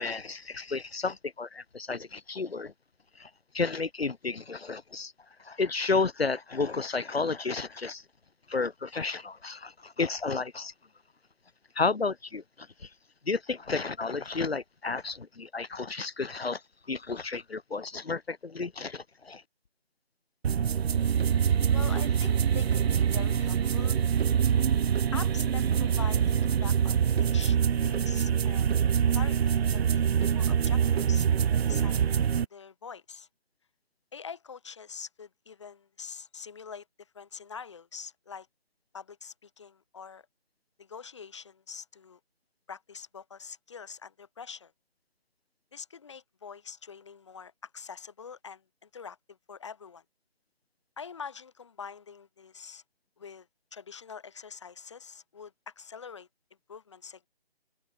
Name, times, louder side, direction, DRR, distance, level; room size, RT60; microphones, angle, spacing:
voice 1, 0.0-2.7 3.2-3.3 3.5-5.1 5.5-8.0 8.5-10.7 11.8-12.4 13.3-16.6 16.9-19.4, left 4 dB, 80° left, 1.6 m, -32 dB
sound 1, 20.4-32.5, right 8 dB, 90° right, 0.5 m, -25 dB
voice 2, 21.7-24.0 25.1-28.8 29.1-31.3 31.6-33.3 34.1-38.5 38.9-40.3 40.8-42.2 42.7-44.7 45.7-50.0 51.0-52.8 53.2-56.3 56.7-57.3, left 6 dB, 30° left, 7.0 m, -45 dB
figure-of-eight pair, 170°, 30 cm